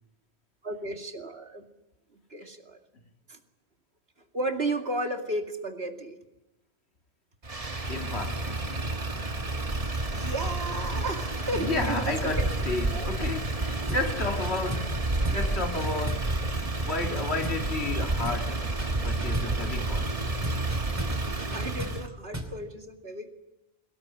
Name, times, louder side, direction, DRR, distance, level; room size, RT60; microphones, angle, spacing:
voice 1, 0.6-1.6 2.3-2.8 3.3-3.4 4.3-6.1 10.1-12.5 12.9-13.1 21.4-23.3, right 1 dB, 70° right, 2.6 m, -33 dB
Motor vehicle (road), 7.4-22.1, right 2 dB, 35° right, 1.5 m, -30 dB
voice 2, 7.9-8.7 11.5-20.1, left 3 dB, 80° left, 2.3 m, -33 dB
sound 1, 13.9-14.1 14.4-15.0 15.2-15.5 15.8-18.0 18.2-18.5 18.8-19.6 20.4-22.6, equal, 15° right, 2.9 m, -38 dB
23.5 x 18.5 x 8.8 m
omnidirectional pair, 1.1 m